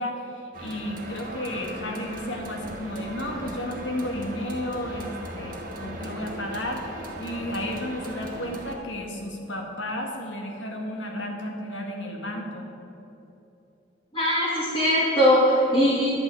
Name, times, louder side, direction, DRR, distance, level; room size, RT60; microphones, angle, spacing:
voice 1, 0.0-12.7, left 1 dB, 75° left, 1 dB, 1.9 m, -33 dB
sound 1, 0.5-8.8, right 1 dB, 45° right, 1.6 m, -38 dB
voice 2, 14.1-16.1, equal, 25° left, -10 dB, 2.9 m, -20 dB
11.0 x 6.2 x 9.1 m, 2.8 s
head